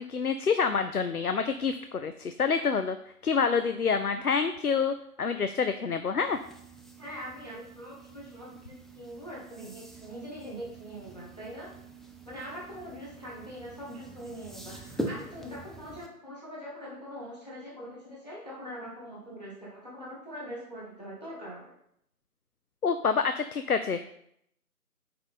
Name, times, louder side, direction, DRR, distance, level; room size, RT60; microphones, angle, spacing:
voice 1, 0.0-3.0 3.2-6.4 22.8-24.0, left 5 dB, 70° left, 9 dB, 0.6 m, -27 dB
sound 1, 6.2-16.1, right 1 dB, ahead, 0.4 m, -43 dB
voice 2, 7.0-11.7 12.2-21.7, equal, 25° left, -5 dB, 1.4 m, -43 dB
9.5 x 3.7 x 4.1 m, 0.72 s
figure-of-eight pair, 175°, 46 cm